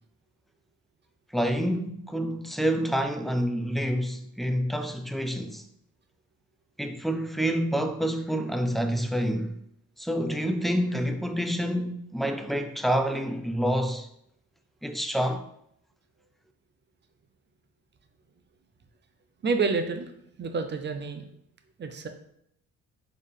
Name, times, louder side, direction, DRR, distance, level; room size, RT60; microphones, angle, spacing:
voice 1, 1.3-5.6 6.8-9.5 10.0-14.1 14.8-15.4, equal, ahead, 0.4 m, -28 dB
voice 2, 19.4-20.1 20.4-21.2 21.8-22.1, right 4 dB, 35° right, 0.6 m, -28 dB
4.5 x 3.4 x 3.4 m
cardioid pair, 90°, 30 cm